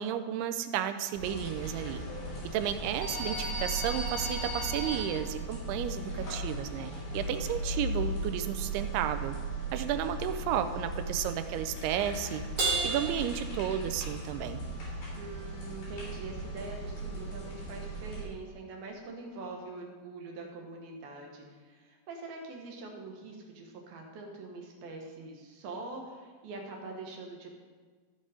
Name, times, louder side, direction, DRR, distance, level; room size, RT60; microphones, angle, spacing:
voice 1, 0.0-2.0 2.5-9.4 9.7-12.5 12.8-14.6, right 10 dB, 90° right, 10 dB, 2.6 m, -33 dB
sound 1, 1.1-18.2, right 1 dB, 55° left, 4.8 m, -37 dB
Crash cymbal, 12.6-14.3, right 4 dB, 40° right, 2.7 m, -32 dB
voice 2, 15.2-27.5, right 3 dB, 70° right, 1 dB, 3.1 m, -44 dB
14.5 x 5.4 x 5.0 m, 1.5 s
omnidirectional pair, 4.5 m